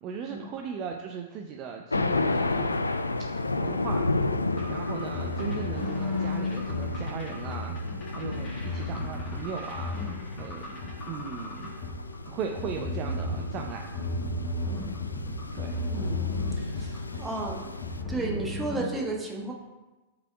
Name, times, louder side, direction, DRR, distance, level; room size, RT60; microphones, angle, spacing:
voice 1, 0.0-2.8 3.6-4.1 4.7-7.8 8.1-10.0 10.3-10.8 11.0-11.7 12.3-13.9 15.5-15.7 17.1-17.2, right 6 dB, 35° right, 2 dB, 0.5 m, -37 dB
Thunder, 1.9-18.0, left 2 dB, 85° left, 0.3 m, -32 dB
sound 1, 4.5-18.8, left 2 dB, 35° left, 1.9 m, -35 dB
voice 2, 15.9-16.2 16.6-17.8 18.1-19.5, right 2 dB, 15° right, -1 dB, 1.2 m, -33 dB
5.5 x 4.1 x 4.5 m, 1.1 s
figure-of-eight pair, 100°, 0 cm